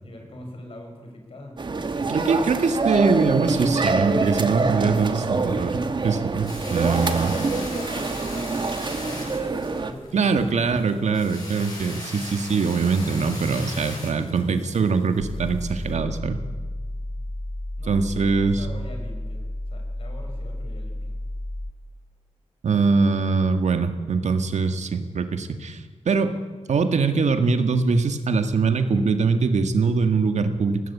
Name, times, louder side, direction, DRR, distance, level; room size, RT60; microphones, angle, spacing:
voice 1, 0.0-1.6 6.7-11.1 17.8-19.4 19.7-21.1, left 1 dB, 55° left, 3 dB, 6.1 m, -41 dB
sound 1, 1.6-9.9, right 3 dB, 40° right, 1.6 m, -26 dB
voice 2, 2.0-7.3 10.1-16.4 17.9-18.7 22.6-26.3 26.7-30.8, right 4 dB, 80° right, 8 dB, 1.9 m, -22 dB
sound 2, 6.4-15.9, left 2 dB, 35° left, 7.8 m, -38 dB
sound 3, 15.2-21.7, left 1 dB, 5° left, 0.9 m, -32 dB
24.0 x 18.5 x 8.6 m, 1.4 s
wide cardioid pair, 160°, 12 cm